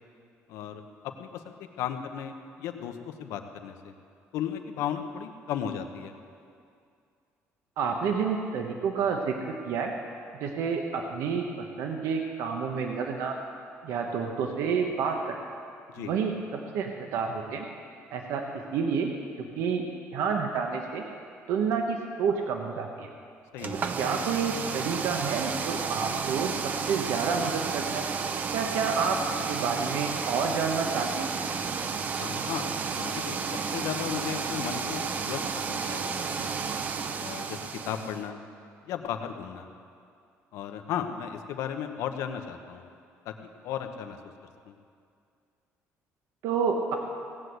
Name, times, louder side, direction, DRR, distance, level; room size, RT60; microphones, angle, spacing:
voice 1, 0.5-2.3 2.6-3.9 4.3-6.1 15.9-16.1 23.5-23.8 32.2-33.4 33.7-36.5 37.2-37.6 37.8-38.4 38.8-39.7 40.5-42.9 43.2-43.3 43.6-44.2 44.7-44.8, left 9 dB, 85° left, 6 dB, 1.1 m, -35 dB
voice 2, 7.8-9.9 10.4-13.4 13.8-15.4 16.0-17.7 18.1-19.1 19.6-19.8 20.1-21.0 21.5-23.1 24.0-28.0 28.5-29.2 29.5-31.3 46.4-47.0, right 5 dB, 75° right, 3 dB, 1.1 m, -29 dB
sound 1, 23.6-38.2, right 5 dB, 35° right, 0.7 m, -32 dB
18.0 x 8.0 x 8.1 m, 2.3 s
cardioid pair, 170°, 5 cm